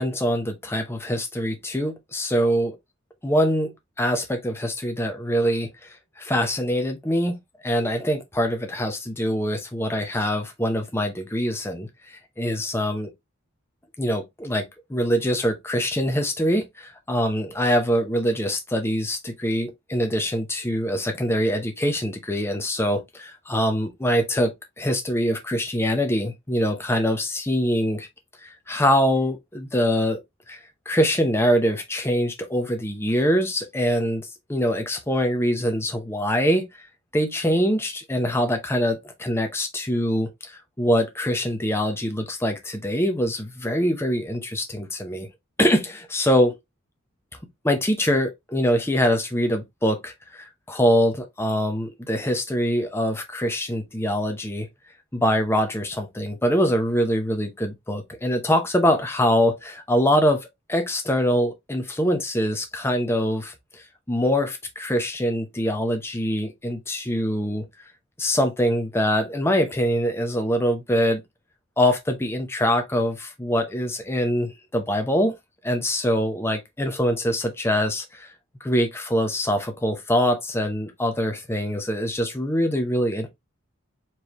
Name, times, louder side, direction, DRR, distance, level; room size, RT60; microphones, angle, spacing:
voice 1, 0.0-2.8 3.2-3.7 4.0-7.4 7.6-13.1 14.0-28.1 28.4-30.2 30.5-36.7 37.1-45.3 45.6-46.6 47.6-54.7 55.1-67.7 68.2-71.2 71.8-75.3 75.6-78.3 78.6-83.3, equal, 10° left, 0.8 m, -24 dB
4.5 x 3.4 x 3.0 m
head